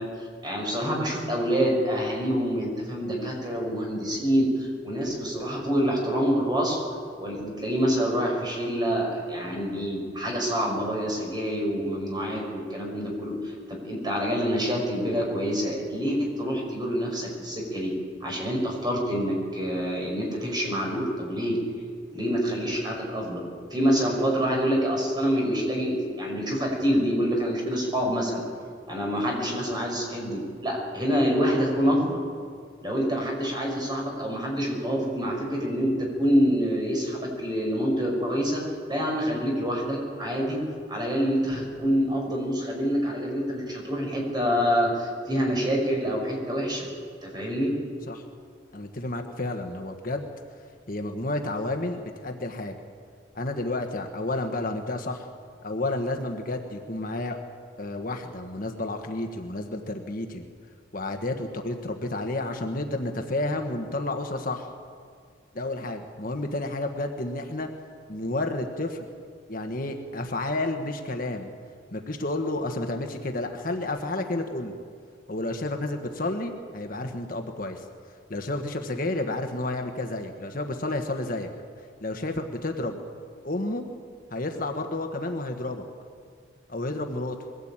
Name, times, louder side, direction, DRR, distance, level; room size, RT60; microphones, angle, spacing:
voice 1, 0.0-6.8 7.2-17.9 18.2-21.6 22.1-23.4 23.7-28.4 28.9-32.2 32.8-38.6 38.9-40.6 40.9-46.9 47.2-47.7, equal, 25° right, 0 dB, 6.1 m, -26 dB
voice 2, 48.7-50.3 50.9-52.8 53.3-55.3 55.6-57.4 57.8-60.4 60.9-64.7 65.5-67.7 68.1-69.1 69.5-71.5 71.9-74.8 75.3-77.8 78.3-81.5 82.0-83.0 83.4-83.8 84.3-85.8 86.7-87.4, left 2 dB, 45° left, 5 dB, 1.4 m, -31 dB
22.5 x 16.5 x 8.9 m, 2.1 s
head